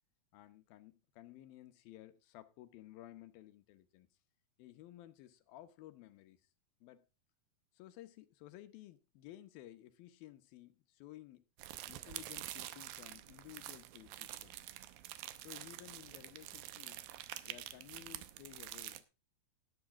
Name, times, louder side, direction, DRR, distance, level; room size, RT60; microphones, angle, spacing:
voice 1, 0.3-4.1 4.6-6.4 6.8-7.1 7.7-11.4 11.9-14.6 15.4-17.0 17.4-19.1, left 14 dB, 85° left, 2.8 m, -55 dB
sound 1, 11.6-19.0, right 14 dB, 85° right, 2.6 m, -47 dB
12.5 x 11.0 x 3.7 m
omnidirectional pair, 4.1 m